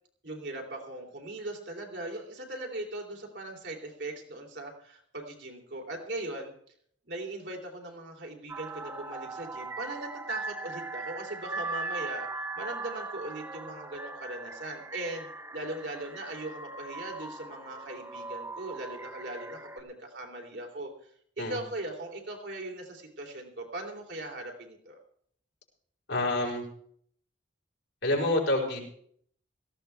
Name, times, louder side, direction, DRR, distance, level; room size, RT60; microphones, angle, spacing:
voice 1, 0.2-6.5 7.1-20.9 21.4-25.0, right 2 dB, 65° right, 1 dB, 3.2 m, -39 dB
sound 1, 8.5-19.8, right 3 dB, 15° right, 0.8 m, -39 dB
voice 2, 26.1-26.6 28.0-28.8, left 1 dB, 75° left, 0 dB, 4.6 m, -27 dB
18.0 x 14.5 x 3.4 m, 0.63 s
head